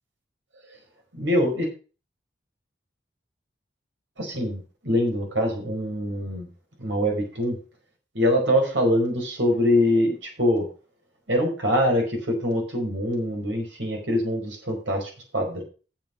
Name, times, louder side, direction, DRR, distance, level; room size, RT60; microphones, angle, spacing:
voice 1, 1.2-1.7 4.2-6.5 6.8-7.6 8.1-10.6 11.3-15.6, equal, 85° right, 2 dB, 4.8 m, -24 dB
7.6 x 7.5 x 6.3 m, 0.35 s
head